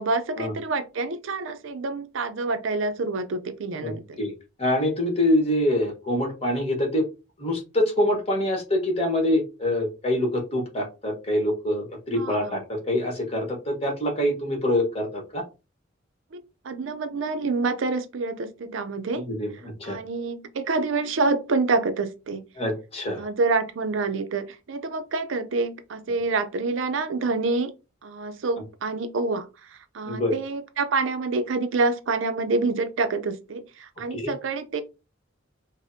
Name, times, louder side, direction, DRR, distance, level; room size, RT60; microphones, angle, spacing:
voice 1, 0.0-4.2 12.2-12.6 16.3-19.3 19.8-22.4 23.2-27.7 28.0-34.8, right 3 dB, 75° right, 0.5 m, -27 dB
voice 2, 3.8-4.3 4.6-7.0 7.4-15.4 19.1-20.0 22.6-23.3 30.1-30.3 34.1-34.3, left 1 dB, 30° left, 1.2 m, -25 dB
4.9 x 2.1 x 2.7 m
head